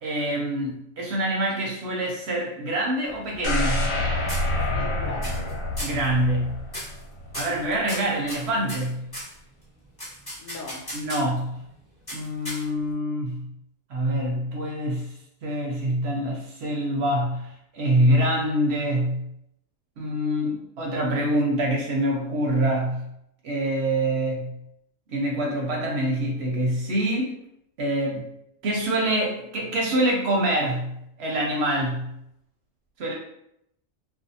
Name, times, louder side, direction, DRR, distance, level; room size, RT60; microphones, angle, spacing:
voice 1, 0.0-3.9 5.8-6.6 7.3-9.0 10.9-11.6 12.1-13.5 13.9-15.1 15.4-19.2 20.0-23.0 23.4-24.5 25.1-27.4 27.8-28.2 28.6-32.1 33.0-33.1, right 1 dB, 65° right, -1 dB, 0.7 m, -25 dB
sound 1, 3.1-4.0 4.3-4.9 5.2-5.5 5.8-6.1 6.7-7.0 7.3-9.3 10.0-11.4 12.1-12.9, equal, 20° left, 0.9 m, -36 dB
sound 2, 3.4-7.4 7.8-7.9, left 1 dB, 90° left, 1.0 m, -27 dB
voice 2, 4.7-5.6 10.4-10.9, left 2 dB, 65° left, -1 dB, 0.8 m, -39 dB
2.5 x 2.3 x 2.6 m, 0.77 s
omnidirectional pair, 1.3 m